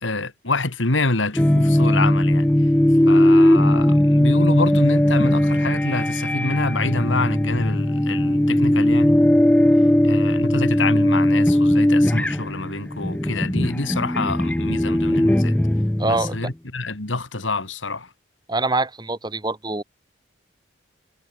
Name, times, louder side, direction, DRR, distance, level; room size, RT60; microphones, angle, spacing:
voice 1, 0.0-2.5 3.1-9.1 10.0-15.6 16.0-18.1, left 3 dB, 90° left, 2.8 m, -27 dB
sound 1, 1.3-16.5, left 1 dB, 5° left, 0.4 m, -18 dB
voice 2, 16.0-16.4 18.5-19.8, right 2 dB, 25° right, 2.6 m, -24 dB
head